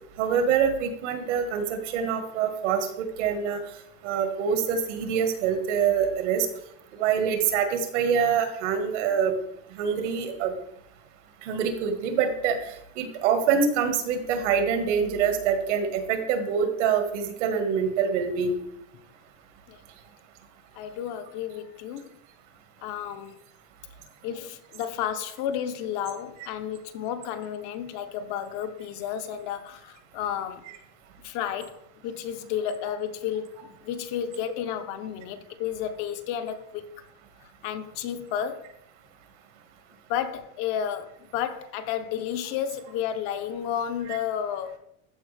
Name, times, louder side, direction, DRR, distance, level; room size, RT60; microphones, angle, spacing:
voice 1, 0.2-2.9 3.2-3.6 4.0-6.5 7.0-9.3 9.8-10.5 11.4-12.6 12.9-18.6 44.1-44.2, right 7 dB, 80° right, 1.7 m, -25 dB
voice 2, 20.7-22.1 22.8-23.4 24.2-30.6 31.2-36.9 37.6-38.6 40.1-44.8, left 9 dB, 50° left, 0.8 m, -32 dB
13.5 x 4.7 x 3.4 m
supercardioid pair, 155°, 35 cm